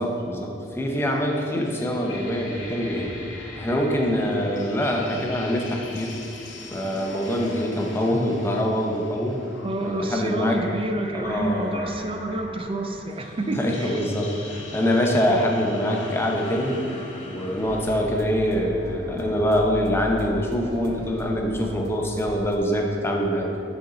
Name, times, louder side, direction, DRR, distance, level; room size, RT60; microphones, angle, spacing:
voice 1, 0.0-3.1 3.6-6.1 6.7-9.4 9.8-10.6 11.1-11.9 13.5-16.8 17.3-23.5, equal, 15° left, 1 dB, 0.7 m, -24 dB
sound 1, 1.1-18.0, left 2 dB, 80° left, 1.0 m, -40 dB
voice 2, 9.6-14.0, right 1 dB, 30° right, 6 dB, 0.5 m, -28 dB
sound 2, 17.6-22.6, right 1 dB, 60° right, 0.7 m, -39 dB
9.8 x 4.1 x 3.9 m, 2.7 s
head